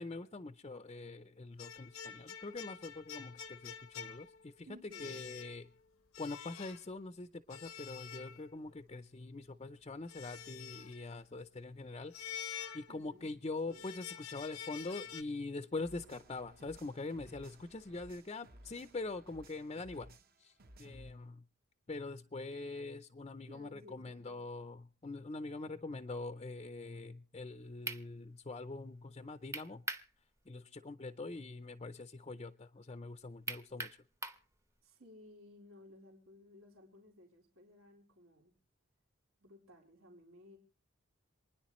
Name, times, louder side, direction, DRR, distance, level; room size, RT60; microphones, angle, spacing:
voice 1, 0.0-4.7 5.0-5.7 6.2-21.4 21.9-29.8 30.5-34.0, left 3 dB, 30° left, 0.5 m, -44 dB
sound 1, 1.6-4.6 4.9-5.8 6.1-6.9 7.5-8.7 10.1-11.1 12.1-13.3 13.7-15.2, left 8 dB, 90° left, 0.8 m, -47 dB
voice 2, 4.6-5.2 12.9-13.3 13.7-13.9 23.5-24.4 34.8-38.5 39.4-40.6, left 1 dB, 80° right, 3.7 m, -58 dB
sound 2, 15.8-21.1, right 1 dB, 45° right, 1.0 m, -59 dB
sound 3, 27.4-27.5 27.9-28.0 29.5-30.1 30.5-30.6 33.5-34.4, right 2 dB, 15° right, 0.8 m, -40 dB
27.5 x 10.0 x 3.1 m
head